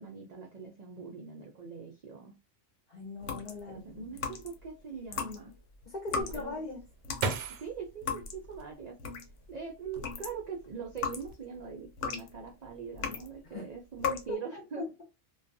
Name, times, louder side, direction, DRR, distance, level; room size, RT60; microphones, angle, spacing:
voice 1, 0.0-2.4 3.7-5.5 6.1-6.5 7.6-9.0 9.5-14.9, right 6 dB, 55° right, 0.4 m, -42 dB
voice 2, 2.9-4.0 5.9-6.8 13.4-13.7 14.0-15.0, left 4 dB, 45° left, 0.7 m, -39 dB
sound 1, 3.2-4.7 5.1-9.5 9.9-13.4 13.9-14.3, left 5 dB, 75° left, 0.9 m, -38 dB
sound 2, 6.2-9.3 9.8-10.6 10.9-11.3, right 4 dB, 75° right, 0.9 m, -38 dB
2.4 x 2.3 x 2.5 m
omnidirectional pair, 1.3 m